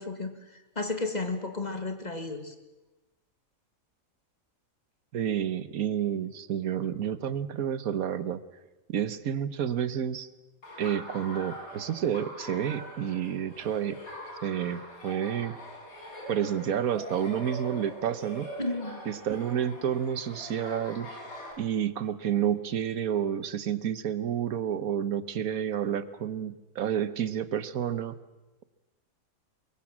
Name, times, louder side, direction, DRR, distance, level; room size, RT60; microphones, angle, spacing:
voice 1, 0.0-2.5 18.6-19.0, left 3 dB, 30° left, 7 dB, 2.0 m, -33 dB
voice 2, 5.1-8.4 8.9-10.3 10.8-14.0 14.4-15.5 16.3-18.5 19.0-21.2 21.6-28.1, right 9 dB, 80° right, 14 dB, 1.4 m, -30 dB
Laughter, 10.6-21.5, equal, 75° left, 5.8 m, -43 dB
23.5 x 22.0 x 7.4 m, 1.1 s
omnidirectional pair, 1.5 m